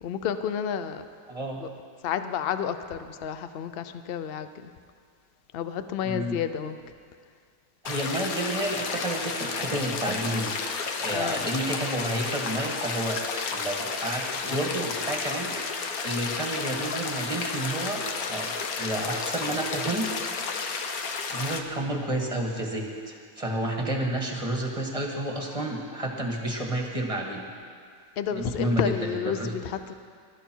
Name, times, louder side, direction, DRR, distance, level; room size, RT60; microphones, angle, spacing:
voice 1, 0.0-1.0 1.6-1.7 2.0-4.7 5.5-6.8 11.1-11.5 28.2-29.9, left 8 dB, 80° left, 10 dB, 0.5 m, -31 dB
voice 2, 1.3-1.6 6.0-6.4 7.8-10.6 11.0-13.2 13.5-18.0 18.3-20.4 21.3-27.5 28.3-29.5, right 1 dB, 20° right, 0 dB, 1.7 m, -30 dB
sound 1, 7.8-21.6, left 5 dB, 60° left, 1.3 m, -32 dB
22.0 x 12.5 x 4.6 m, 2.1 s
omnidirectional pair, 1.9 m